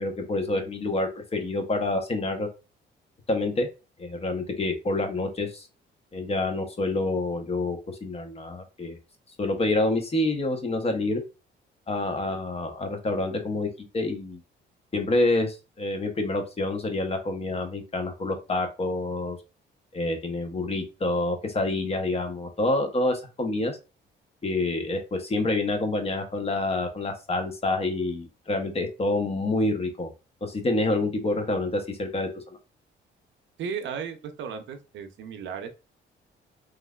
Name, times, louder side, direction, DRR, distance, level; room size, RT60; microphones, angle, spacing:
voice 1, 0.0-2.5 3.3-3.7 4.0-5.7 6.1-9.0 9.4-11.2 11.9-14.4 14.9-19.4 19.9-23.8 24.4-30.1 30.4-32.4, left 2 dB, 30° left, 4 dB, 0.8 m, -27 dB
voice 2, 33.6-35.7, right 6 dB, 70° right, 7 dB, 0.6 m, -35 dB
3.1 x 2.4 x 2.2 m, 0.30 s
cardioid pair, 90°, 20 cm